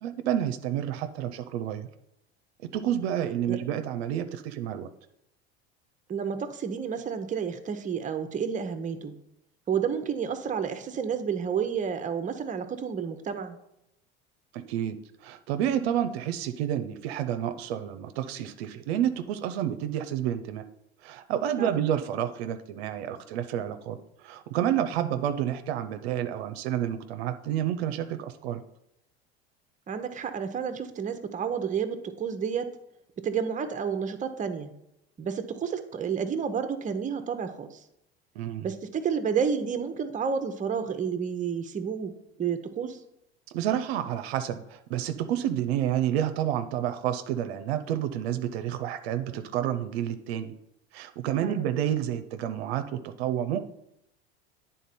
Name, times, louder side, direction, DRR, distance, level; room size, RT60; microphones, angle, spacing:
voice 1, 0.0-1.9 2.7-4.9 14.5-15.0 15.2-20.6 21.0-28.6 38.4-38.7 43.5-50.5 50.9-53.6, right 10 dB, 75° right, 9 dB, 0.6 m, -29 dB
voice 2, 6.1-9.1 9.7-13.6 21.6-21.8 29.9-32.7 33.2-34.7 35.2-37.8 38.6-43.0 51.4-51.7, right 7 dB, 25° right, 8 dB, 0.7 m, -30 dB
9.3 x 3.7 x 4.2 m, 0.81 s
hypercardioid pair, 80°, 31 cm